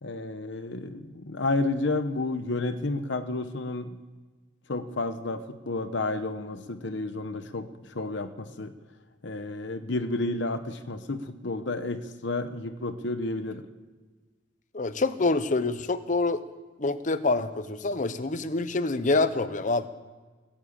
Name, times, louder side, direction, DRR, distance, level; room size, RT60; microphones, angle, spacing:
voice 1, 0.0-4.0 4.7-8.7 9.2-13.7, left 2 dB, 65° left, 10 dB, 0.9 m, -31 dB
voice 2, 14.7-16.4 16.8-19.9, left 3 dB, 40° left, 12 dB, 0.8 m, -26 dB
20.5 x 7.4 x 8.8 m, 1.4 s
head